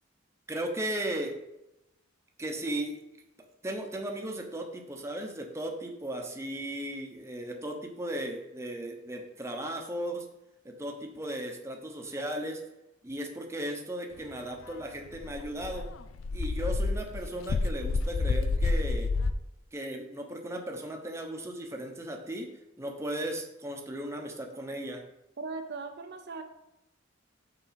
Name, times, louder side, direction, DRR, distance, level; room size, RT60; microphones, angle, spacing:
voice 1, 0.5-1.4 2.4-3.0 3.4-10.3 10.6-12.6 13.0-15.9 16.3-19.1 19.7-22.5 22.8-25.0, right 1 dB, 15° right, 2 dB, 0.9 m, -36 dB
Dog, 14.7-14.8 15.1-19.3, left 3 dB, 85° left, 0.5 m, -29 dB
voice 2, 25.4-26.4, right 4 dB, 60° right, 5 dB, 0.6 m, -38 dB
5.9 x 4.5 x 5.7 m, 0.89 s
head